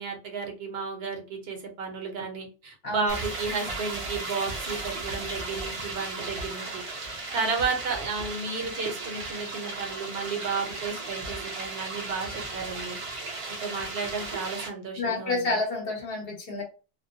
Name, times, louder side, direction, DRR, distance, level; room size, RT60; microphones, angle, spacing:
voice 1, 0.0-6.8 7.3-13.0 13.6-15.6, right 5 dB, 65° right, 2 dB, 0.8 m, -33 dB
sound 1, 3.1-14.7, right 3 dB, 45° right, 0.4 m, -36 dB
voice 2, 15.0-16.6, left 3 dB, 60° left, 1 dB, 1.0 m, -29 dB
2.4 x 2.1 x 2.5 m, 0.34 s
omnidirectional pair, 1.2 m